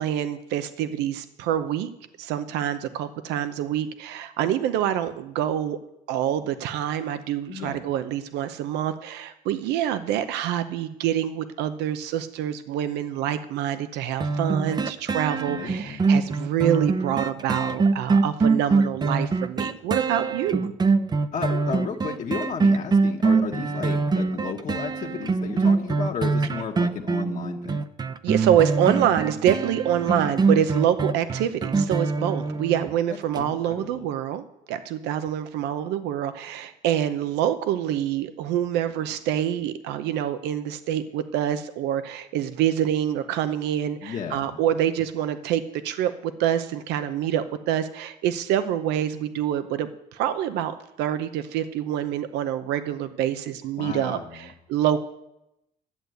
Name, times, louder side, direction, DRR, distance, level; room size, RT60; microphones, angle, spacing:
voice 1, 0.0-1.9 2.2-5.8 6.1-20.7 28.2-55.0, right 10 dB, 90° right, 11 dB, 0.8 m, -26 dB
voice 2, 7.5-7.9 15.5-16.1 21.3-27.8 30.1-30.3 33.3-34.0 44.0-44.6 53.8-54.3, left 6 dB, 45° left, 1 dB, 1.3 m, -33 dB
sound 1, 14.2-32.9 33.3-33.4, right 4 dB, 25° right, 0.6 m, -23 dB
12.0 x 8.1 x 8.0 m, 0.85 s
cardioid pair, 110°, 17 cm